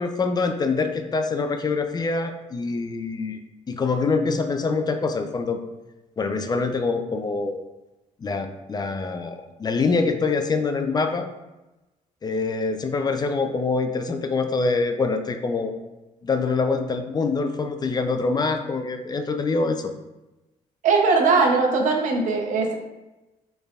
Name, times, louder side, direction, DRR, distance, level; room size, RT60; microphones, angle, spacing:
voice 1, 0.0-3.4 3.7-5.6 6.2-7.6 8.2-11.3 12.2-15.7 16.2-19.9, left 4 dB, 30° left, 7 dB, 0.4 m, -25 dB
voice 2, 20.8-22.7, right 4 dB, 70° right, 2 dB, 0.8 m, -20 dB
4.2 x 3.4 x 2.4 m, 1.0 s
cardioid pair, 80°, 14 cm